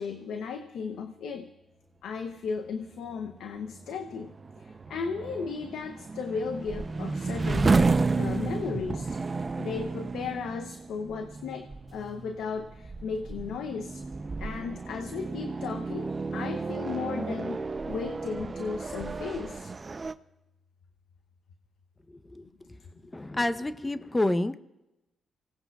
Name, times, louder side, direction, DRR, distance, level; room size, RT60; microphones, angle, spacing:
voice 1, 0.0-1.5 2.0-7.8 8.2-9.2 9.6-14.0 14.4-19.7, left 5 dB, 80° left, 6 dB, 0.8 m, -35 dB
sound 1, 3.1-20.1, right 3 dB, 40° right, 0.6 m, -32 dB
voice 2, 23.1-24.6, left 1 dB, 20° left, 12 dB, 0.8 m, -28 dB
25.5 x 17.5 x 2.4 m, 0.95 s
supercardioid pair, 50°, 0 cm